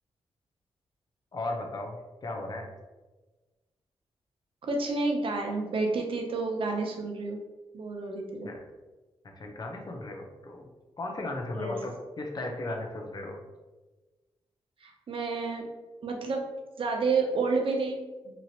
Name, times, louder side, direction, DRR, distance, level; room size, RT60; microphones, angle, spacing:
voice 1, 1.3-2.7 8.4-8.6 9.2-10.6 11.0-13.4, left 2 dB, 40° left, 2 dB, 0.6 m, -36 dB
voice 2, 4.7-7.4 7.7-8.5 11.6-11.8 14.8-15.6 16.0-16.5 16.8-18.4, right 3 dB, 60° right, 1 dB, 0.6 m, -30 dB
3.0 x 2.5 x 2.8 m, 1.2 s
cardioid pair, 90°, 10 cm